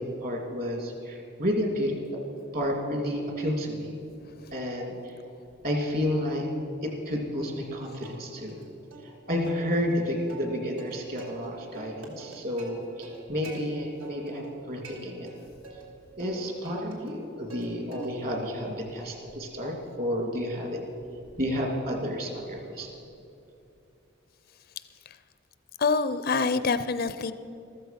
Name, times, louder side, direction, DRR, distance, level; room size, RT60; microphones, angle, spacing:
voice 1, 0.0-2.0 2.5-3.9 4.5-5.1 5.6-6.5 6.8-8.6 9.0-15.3 16.2-20.9 21.4-22.9, equal, 45° right, 2 dB, 2.8 m, -31 dB
Plucked string instrument, 8.0-8.6 8.9-9.0 9.4-11.5 11.7-13.6 14.0-14.5 14.8-15.8 16.2-17.7 17.9-18.4 18.8-23.1, right 4 dB, 80° right, 2.8 m, -47 dB
voice 2, 25.8-27.3, left 4 dB, 45° left, 12 dB, 0.5 m, -25 dB
14.0 x 14.0 x 5.8 m, 2.7 s
head